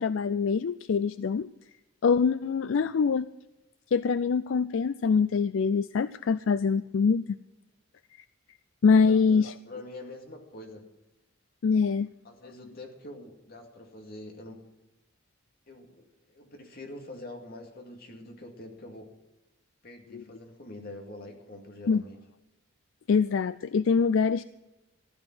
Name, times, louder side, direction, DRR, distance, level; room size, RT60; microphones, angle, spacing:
voice 1, 0.0-1.5 2.0-3.3 3.9-7.4 8.8-9.5 11.6-12.1 20.1-20.2 21.9-22.0 23.1-24.4, left 5 dB, 65° left, 15 dB, 0.4 m, -24 dB
voice 2, 9.1-10.9 12.2-14.6 15.7-19.1 19.8-22.2, left 1 dB, 50° left, 3 dB, 2.3 m, -45 dB
15.5 x 11.0 x 6.0 m, 0.99 s
head